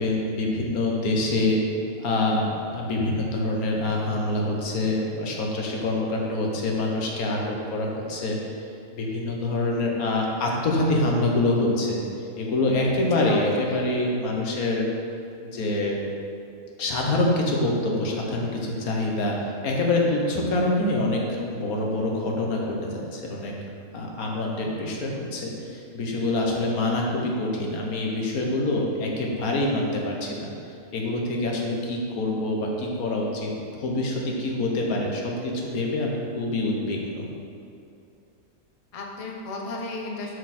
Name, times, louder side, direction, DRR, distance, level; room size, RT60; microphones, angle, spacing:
voice 1, 0.0-1.6 2.0-8.4 8.9-12.0 12.4-14.9 15.5-16.0 16.8-19.3 19.6-23.5 23.9-30.5 30.9-37.3, left 2 dB, 85° left, -1 dB, 1.6 m, -25 dB
voice 2, 13.3-13.8 38.9-40.4, left 2 dB, 35° left, 0 dB, 0.7 m, -34 dB
7.1 x 6.4 x 4.3 m, 2.6 s
omnidirectional pair, 1.5 m